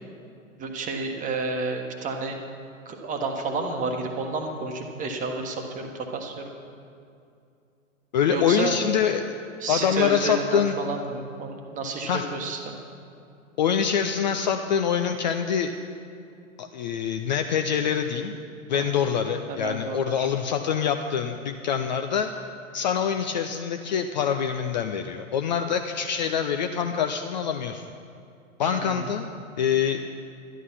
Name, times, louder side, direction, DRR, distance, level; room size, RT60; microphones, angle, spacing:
voice 1, 0.6-2.4 2.8-6.5 8.3-8.8 9.6-12.7 18.7-19.1 19.5-20.3 28.6-29.1, right 3 dB, 20° right, 3 dB, 1.2 m, -31 dB
voice 2, 8.1-9.2 9.7-10.8 12.1-12.3 13.6-15.7 16.6-18.4 18.7-22.3 22.7-27.8 28.6-29.3 29.6-30.0, left 7 dB, 35° left, 6 dB, 0.5 m, -25 dB
12.0 x 11.0 x 5.7 m, 2.5 s
figure-of-eight pair, 105°, 41 cm